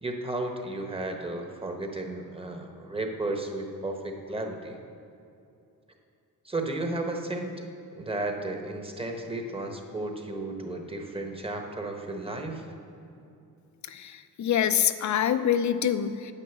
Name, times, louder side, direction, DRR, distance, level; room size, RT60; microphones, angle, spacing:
voice 1, 0.0-4.8 6.4-7.5 7.9-12.6, right 2 dB, 15° right, 3 dB, 1.2 m, -33 dB
voice 2, 13.8-16.3, left 9 dB, 50° left, 11 dB, 0.6 m, -26 dB
10.0 x 9.1 x 7.1 m, 2.6 s
wide cardioid pair, 135°, 36 cm